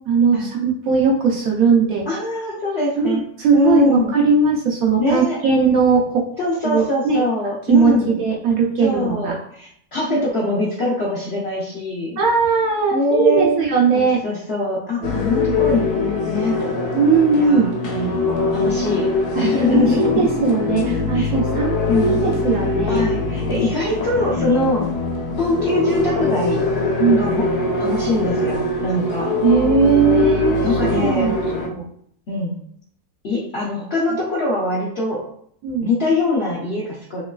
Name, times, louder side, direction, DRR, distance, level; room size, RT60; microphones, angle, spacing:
voice 1, 0.1-2.0 3.0-6.2 6.6-7.2 7.7-9.4 10.1-10.2 12.2-14.2 15.4-15.5 16.9-17.7 19.3-23.0 27.0-27.2 29.4-31.4 31.7-31.8 35.6-35.9, right 5 dB, 70° right, -2 dB, 1.0 m, -18 dB
voice 2, 2.1-3.2 3.5-4.2 5.0-5.4 6.4-8.2 8.8-12.2 12.9-13.6 13.9-16.7 17.3-18.2 18.5-19.1 19.3-20.3 20.9-21.3 21.9-22.3 22.9-24.8 25.4-26.6 27.2-27.4 27.8-29.3 30.6-31.3 32.3-32.5 33.2-35.2 35.8-37.2, left 2 dB, 55° left, -6 dB, 0.8 m, -22 dB
sound 1, 15.0-31.7, left 3 dB, 80° left, 1.1 m, -22 dB
3.0 x 2.9 x 2.3 m, 0.66 s
omnidirectional pair, 1.6 m